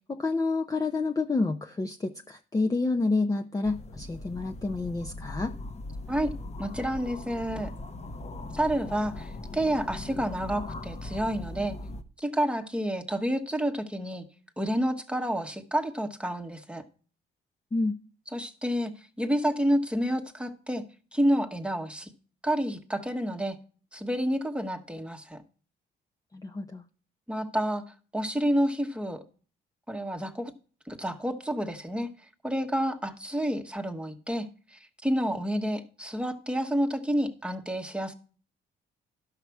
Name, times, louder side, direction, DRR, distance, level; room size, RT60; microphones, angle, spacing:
voice 1, 0.1-5.5 17.7-18.0 26.3-26.8, left 3 dB, 15° left, 4 dB, 0.6 m, -29 dB
sound 1, 3.6-12.0, left 2 dB, 35° left, 0.9 m, -39 dB
voice 2, 6.6-7.7 8.5-11.7 12.2-14.3 14.6-16.8 18.3-20.8 21.1-22.1 22.4-23.6 23.9-25.4 27.3-27.8 28.1-29.2 29.9-30.5 30.9-32.1 32.4-38.1, equal, 5° right, 6 dB, 1.1 m, -29 dB
12.0 x 5.8 x 4.6 m, 0.41 s
cardioid pair, 90°, 20 cm